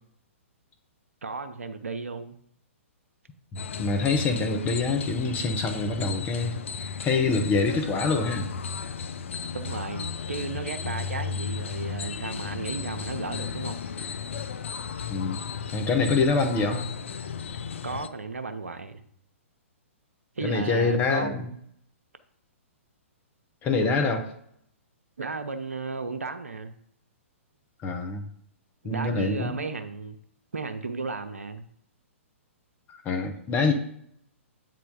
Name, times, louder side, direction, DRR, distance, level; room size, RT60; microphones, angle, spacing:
voice 1, 1.2-2.4 9.5-13.8 17.8-19.0 20.4-21.5 25.2-26.7 28.8-30.2 30.5-31.6, right 4 dB, 80° right, 8 dB, 0.8 m, -34 dB
sound 1, 3.6-18.1, left 6 dB, 65° left, 0.5 m, -34 dB
voice 2, 3.8-6.6 7.0-8.5 15.1-15.4 15.7-16.8 20.4-21.5 23.6-24.3 27.8-28.2 28.8-29.5 32.9-33.7, left 4 dB, 25° left, 4 dB, 1.1 m, -25 dB
8.6 x 3.9 x 4.9 m, 0.70 s
figure-of-eight pair, 120°, 7 cm